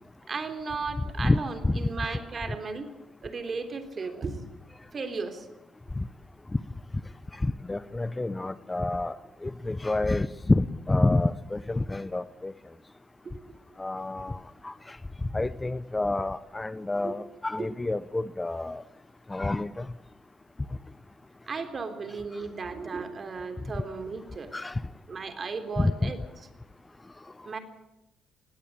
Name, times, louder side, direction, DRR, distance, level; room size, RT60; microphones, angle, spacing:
voice 1, 0.3-2.9 3.2-4.4 4.9-5.5 13.2-13.4 17.0-17.2 17.6-17.7 21.5-24.5 25.1-26.2 27.4-27.6, right 4 dB, 40° right, 8 dB, 3.6 m, -35 dB
voice 2, 1.6-2.2 6.0-6.1 7.4-9.1 9.4-12.5 13.8-14.4 14.6-14.7 15.3-18.8 19.3-19.8 24.5-24.7 25.8-26.1, left 2 dB, 15° left, 16 dB, 0.7 m, -28 dB
19.5 x 17.5 x 8.6 m, 0.92 s
cardioid pair, 90°, 0 cm